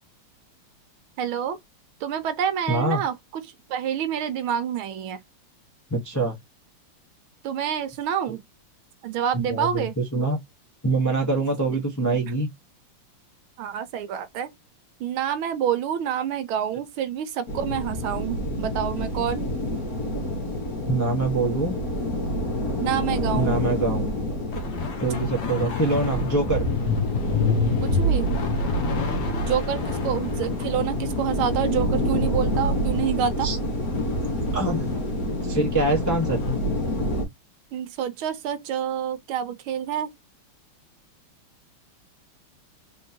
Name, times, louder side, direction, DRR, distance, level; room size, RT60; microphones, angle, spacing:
voice 1, 1.2-1.6 2.0-5.2 7.4-8.4 9.0-10.0 13.6-14.5 15.0-19.5 22.8-23.6 27.8-28.3 29.4-33.5 37.7-40.1, right 9 dB, 75° right, 1.5 m, -28 dB
voice 2, 2.7-3.0 5.9-6.3 9.3-10.4 10.8-12.5 20.8-21.7 23.4-24.1 25.0-26.7 33.4-33.6 34.5-34.9 35.5-36.4, right 2 dB, 15° left, 0.6 m, -24 dB
sound 1, 17.5-37.3, left 1 dB, 45° left, 2.0 m, -28 dB
sound 2, 24.5-36.6, left 1 dB, 65° left, 1.6 m, -29 dB
4.0 x 3.7 x 2.7 m
omnidirectional pair, 2.4 m